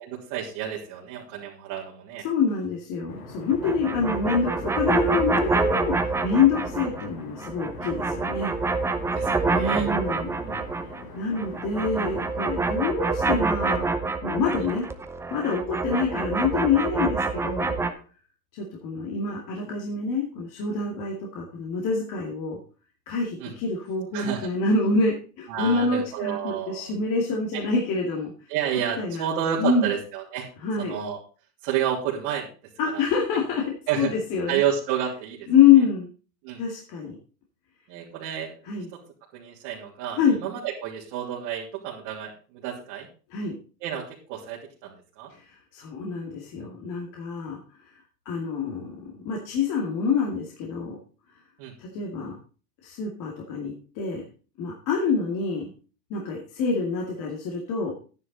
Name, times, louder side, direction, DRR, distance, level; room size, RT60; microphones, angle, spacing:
voice 1, 0.0-2.2 9.1-9.9 10.4-10.6 23.4-23.5 24.1-24.5 25.5-26.9 28.5-30.5 30.8-31.2 31.6-32.5 32.9-33.0 33.9-34.1 34.5-35.5 36.4-36.6 37.9-38.5 38.9-39.0 39.3-43.1 43.8-45.3 51.6-51.7, right 9 dB, 50° right, -5 dB, 3.1 m, -30 dB
voice 2, 2.2-8.5 9.5-10.4 11.1-13.9 14.2-14.9 15.3-17.7 18.5-22.6 23.1-28.3 29.0-29.2 29.6-29.9 30.6-30.9 32.8-33.6 34.0-34.6 35.5-36.1 36.6-37.2 38.6-38.9 40.2-40.4 43.3-43.5 45.3-47.6 48.3-51.0 51.8-52.4 52.8-54.2 54.6-55.7 56.1-57.9, left 5 dB, 40° left, -1 dB, 2.4 m, -26 dB
sound 1, 3.1-12.3, left 4 dB, 75° left, 4.9 m, -42 dB
sound 2, 3.5-7.1 7.4-11.1 11.3-17.9, right 3 dB, 5° right, 0.6 m, -27 dB
11.0 x 9.8 x 4.0 m, 0.37 s
hypercardioid pair, 125°, 47 cm